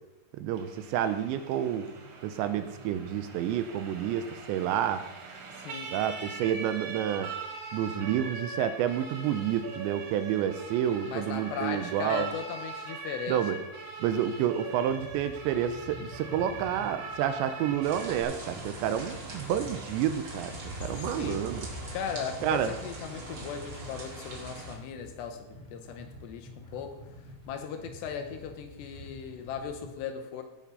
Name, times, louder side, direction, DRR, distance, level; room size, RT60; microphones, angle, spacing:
voice 1, 0.4-1.9 2.2-5.0 5.9-7.3 7.7-12.3 13.3-13.6 14.0-20.5 20.8-21.6 22.4-22.7, right 10 dB, 85° right, 10 dB, 2.7 m, -29 dB
Siren, 0.5-18.2, right 4 dB, 55° right, 2.9 m, -42 dB
voice 2, 5.6-6.0 11.0-13.5 21.1-21.5 21.9-27.0 27.5-30.4, left 7 dB, 75° left, 6 dB, 2.8 m, -37 dB
sound 1, 14.9-29.9, left 1 dB, 25° left, 1.4 m, -48 dB
sound 2, 17.8-24.8, right 1 dB, 40° right, 2.2 m, -41 dB
17.0 x 5.9 x 5.4 m, 0.99 s
omnidirectional pair, 5.4 m